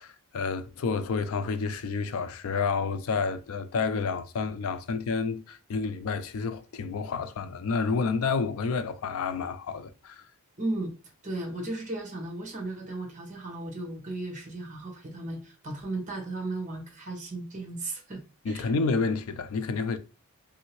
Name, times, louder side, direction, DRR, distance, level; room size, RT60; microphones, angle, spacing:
voice 1, 0.0-10.2 18.4-20.0, left 4 dB, 70° left, 0.4 m, -29 dB
voice 2, 10.6-10.9 11.2-18.2 18.5-18.7, right 2 dB, 35° right, 1.0 m, -35 dB
3.2 x 2.7 x 3.0 m
head